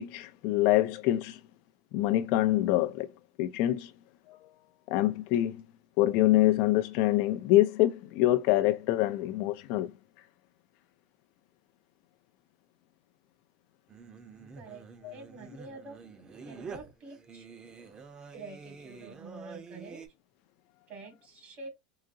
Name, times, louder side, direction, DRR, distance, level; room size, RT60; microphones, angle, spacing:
voice 1, 0.0-1.4 1.9-3.1 3.4-3.9 4.3-4.4 4.9-5.6 6.0-9.9 15.0-15.1, left 15 dB, 60° left, 0.4 m, -25 dB
Singing, 13.9-20.1, right 5 dB, 25° right, 0.7 m, -47 dB
voice 2, 15.1-16.1 16.4-17.5 18.3-20.0 20.9-21.7, right 3 dB, 50° right, 1.7 m, -47 dB
3.8 x 2.7 x 2.6 m
supercardioid pair, 120°, 3 cm